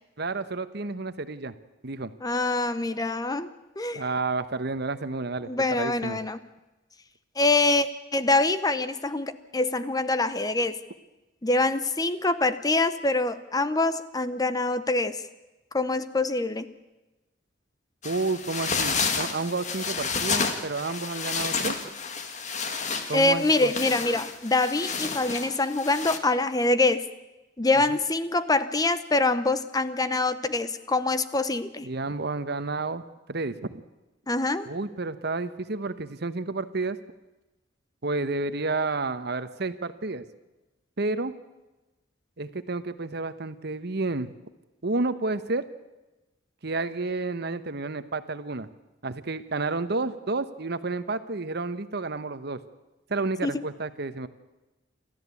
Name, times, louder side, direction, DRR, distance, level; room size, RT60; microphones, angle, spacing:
voice 1, 0.2-1.5 1.8-2.1 3.9-5.5 5.8-6.2 18.0-21.8 23.1-23.7 27.9-28.0 31.8-33.0 33.3-33.8 34.7-37.0 38.0-40.2 41.0-41.3 42.4-44.3 44.8-45.6 46.6-48.7 49.0-52.6 53.1-54.3, right 3 dB, 60° right, 12 dB, 1.1 m, -30 dB
voice 2, 2.2-3.5 3.8-4.0 5.4-6.4 7.4-10.8 11.4-15.2 15.7-16.7 23.1-27.1 27.6-31.9 34.3-34.7 53.4-53.6, left 2 dB, 20° left, 13 dB, 0.8 m, -25 dB
sound 1, 18.0-26.2, left 5 dB, 40° left, 1.7 m, -31 dB
28.5 x 13.5 x 8.4 m, 1.1 s
head